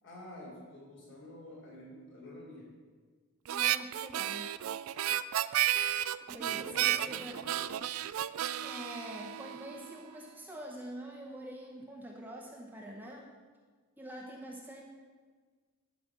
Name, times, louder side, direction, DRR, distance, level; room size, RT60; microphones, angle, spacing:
voice 1, 0.0-2.7 6.4-7.9, left 1 dB, 55° left, -4 dB, 3.6 m, -49 dB
voice 2, 3.5-4.6 6.3-7.4 8.6-13.3 14.0-14.8, right 1 dB, 10° right, -1 dB, 0.8 m, -45 dB
Harmonica, 3.5-10.0, right 12 dB, 70° right, 0.3 m, -32 dB
11.5 x 5.2 x 7.2 m, 1.5 s
head